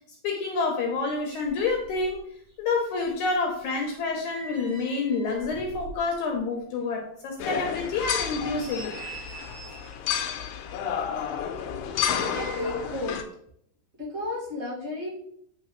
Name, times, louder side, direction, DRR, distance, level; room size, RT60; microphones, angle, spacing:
voice 1, 0.2-2.3 2.6-8.9, left 3 dB, 75° left, 1 dB, 1.9 m, -28 dB
sound 1, 0.9-1.0 1.2-2.2 2.5-6.4 6.8-6.9 7.4-7.5 8.1-10.0 10.9-12.9 13.2-13.3, right 3 dB, 60° right, 3.6 m, -45 dB
sound 2, 7.4-13.2, left 8 dB, 90° left, 2.3 m, -31 dB
voice 2, 12.2-13.2 14.0-15.1, left 2 dB, 25° right, -4 dB, 2.0 m, -32 dB
9.0 x 3.4 x 3.1 m, 0.68 s
omnidirectional pair, 4.0 m